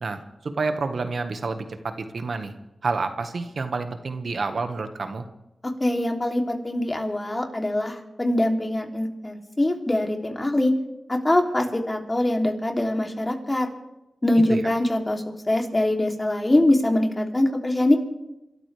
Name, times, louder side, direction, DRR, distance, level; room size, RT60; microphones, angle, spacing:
voice 1, 0.0-2.5 2.8-5.2 14.5-14.6, right 4 dB, 70° right, 7 dB, 1.6 m, -29 dB
voice 2, 5.8-10.7 11.1-13.7 14.2-18.0, left 1 dB, 30° left, 2 dB, 3.1 m, -23 dB
27.0 x 13.0 x 3.5 m, 0.93 s
cardioid pair, 40°, 0 cm